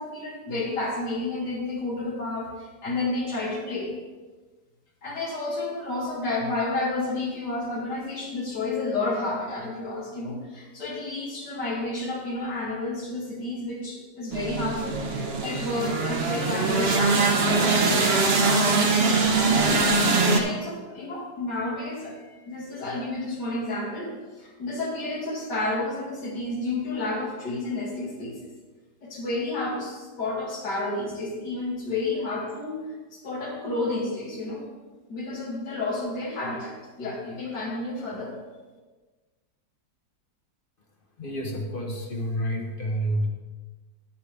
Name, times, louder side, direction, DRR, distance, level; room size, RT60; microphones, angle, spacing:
voice 1, 0.0-3.9 5.0-19.7 20.0-22.2 22.5-28.5 29.0-34.7 35.1-38.4, left 2 dB, 85° left, -3 dB, 2.7 m, -31 dB
sound 1, 14.3-20.4, right 3 dB, 45° right, 1.1 m, -22 dB
voice 2, 41.2-43.3, equal, 35° left, 1 dB, 1.1 m, -29 dB
10.5 x 9.2 x 3.5 m, 1.3 s
omnidirectional pair, 1.8 m